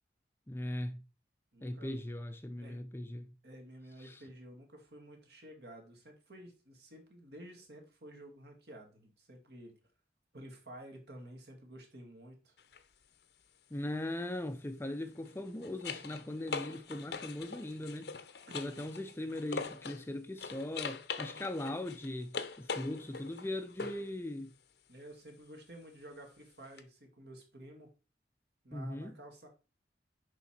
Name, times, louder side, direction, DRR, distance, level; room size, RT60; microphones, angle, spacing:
voice 1, 0.5-1.0 1.6-3.3 4.0-4.2 13.7-18.1 18.5-24.5 28.7-29.1, left 1 dB, 15° left, 0.5 m, -39 dB
voice 2, 1.5-2.0 2.6-2.8 3.4-9.7 10.3-12.6 18.8-18.9 24.9-27.9 28.6-29.5, right 1 dB, 65° right, 2.0 m, -52 dB
sound 1, 12.6-12.8 15.1-20.1 20.4-24.1 26.8-26.9, left 5 dB, 65° left, 0.7 m, -42 dB
6.8 x 5.0 x 4.3 m
head